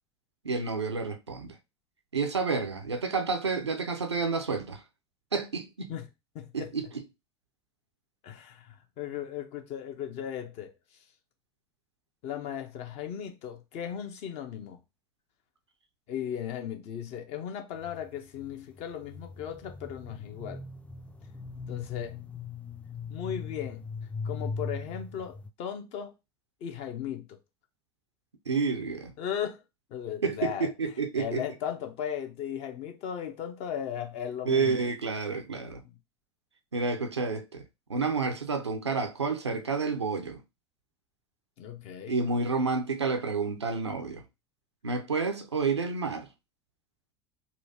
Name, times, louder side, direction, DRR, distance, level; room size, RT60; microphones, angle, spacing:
voice 1, 0.4-1.6 2.1-4.8 5.3-5.9 6.5-6.9 28.5-29.1 30.2-31.4 34.5-35.8 36.7-37.6 37.9-40.4 42.1-44.2 44.8-46.3, right 4 dB, 85° right, 0.5 m, -29 dB
voice 2, 6.3-6.7 8.2-10.7 12.2-14.8 16.1-20.6 21.7-22.2 23.1-23.8 24.2-26.1 26.6-27.3 29.2-29.6 29.9-30.7 31.2-34.8 41.6-42.1, left 9 dB, 50° left, 0.8 m, -36 dB
sound 1, 17.7-25.5, left 4 dB, 10° left, 0.4 m, -40 dB
4.1 x 2.3 x 2.7 m
figure-of-eight pair, 70°, 14 cm